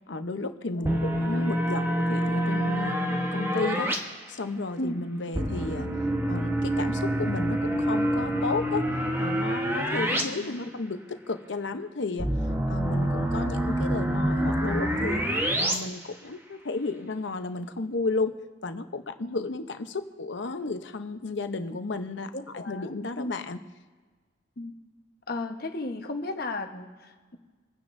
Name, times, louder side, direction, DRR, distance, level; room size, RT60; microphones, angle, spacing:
voice 1, 0.1-4.0 4.3-5.9 6.3-8.9 9.2-12.3 12.7-15.2 15.6-23.6, left 3 dB, 70° left, 9 dB, 0.8 m, -33 dB
sound 1, 0.8-4.0 5.3-10.2 10.5-10.6 12.2-15.7, right 1 dB, 10° right, 1.1 m, -26 dB
voice 2, 10.2-10.6 19.3-19.5 22.3-23.3 24.6-24.7 25.3-27.4, left 2 dB, 50° left, 5 dB, 1.1 m, -35 dB
28.5 x 9.6 x 2.6 m, 1.4 s
head